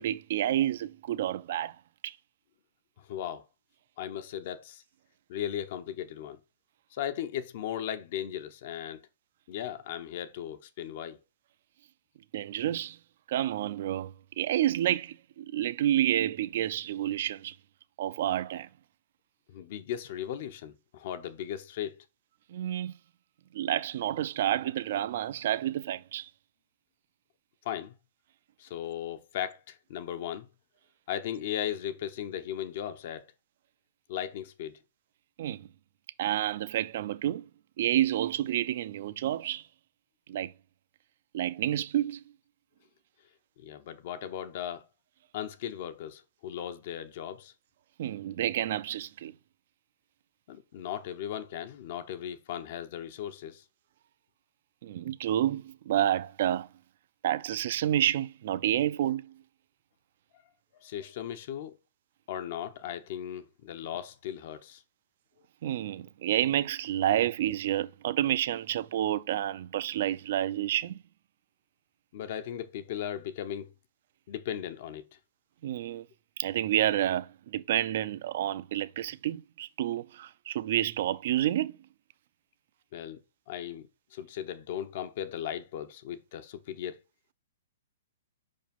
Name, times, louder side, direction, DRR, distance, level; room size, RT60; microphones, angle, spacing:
voice 1, 0.0-1.8 2.0-2.2 12.3-13.0 13.3-17.6 18.0-18.7 22.5-22.9 23.5-26.3 35.4-35.7 36.2-37.4 37.8-39.6 40.3-40.5 41.3-42.2 48.0-49.3 54.8-56.7 57.2-59.3 65.6-71.0 75.6-76.0 76.4-81.8, right 12 dB, 50° right, 0.5 m, -29 dB
voice 2, 3.1-3.4 4.0-4.8 5.3-6.4 6.9-9.0 9.5-11.2 19.5-22.0 27.6-27.9 28.6-30.5 31.1-33.3 34.1-34.8 43.6-44.9 45.3-47.5 50.5-53.6 60.8-61.8 62.3-64.8 72.1-73.7 74.3-75.0 82.9-83.2 83.5-87.0, left 10 dB, 45° left, 0.8 m, -37 dB
5.2 x 5.1 x 5.3 m
hypercardioid pair, 160°, 0 cm